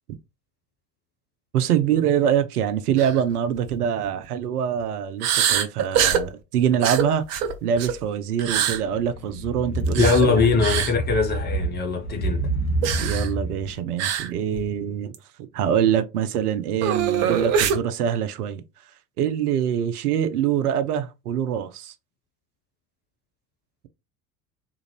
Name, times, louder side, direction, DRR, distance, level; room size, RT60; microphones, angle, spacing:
voice 1, 1.5-7.2 7.6-10.3 13.0-15.1 15.5-18.6 19.2-21.9, right 9 dB, 65° right, 0.6 m, -24 dB
sound 1, 3.0-3.2 3.6-3.7 5.2-6.3 6.8-8.0 8.4-8.8 9.9-10.2 10.6-10.9 12.8-13.3 14.0-14.3 14.6-14.7 15.1-15.2 16.8-17.8, right 8 dB, 25° right, 0.3 m, -23 dB
sound 2, 8.7-13.8, right 2 dB, 60° left, 1.2 m, -28 dB
voice 2, 10.0-12.5, left 4 dB, 20° left, 0.8 m, -21 dB
3.6 x 2.5 x 3.0 m
figure-of-eight pair, 75°, 49 cm